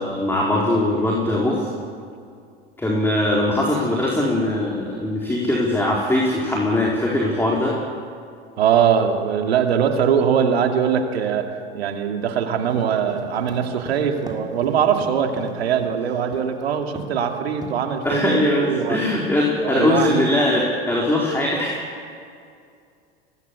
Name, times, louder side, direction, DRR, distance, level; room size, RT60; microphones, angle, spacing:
voice 1, 0.0-1.7 2.8-7.7 18.0-21.8, left 1 dB, 5° left, -3 dB, 4.3 m, -21 dB
voice 2, 8.6-11.5 11.7-19.0 19.6-20.2, right 7 dB, 80° right, 4 dB, 2.6 m, -21 dB
sound 1, 12.7-15.9 16.3-16.6 17.0-17.3 17.6-18.2, right 2 dB, 15° right, 3.6 m, -38 dB
23.5 x 19.5 x 8.5 m, 2.3 s
hypercardioid pair, 90°, 31 cm